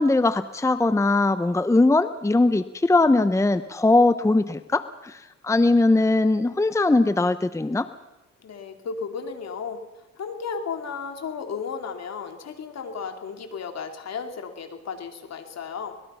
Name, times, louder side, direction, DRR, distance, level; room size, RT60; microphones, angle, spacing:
voice 1, 0.0-7.9, left 2 dB, 10° left, 13 dB, 0.8 m, -20 dB
voice 2, 8.4-9.8 10.2-15.9, left 5 dB, 60° left, 6 dB, 3.0 m, -34 dB
25.0 x 20.0 x 5.7 m, 1.1 s
cardioid pair, 90°, 30 cm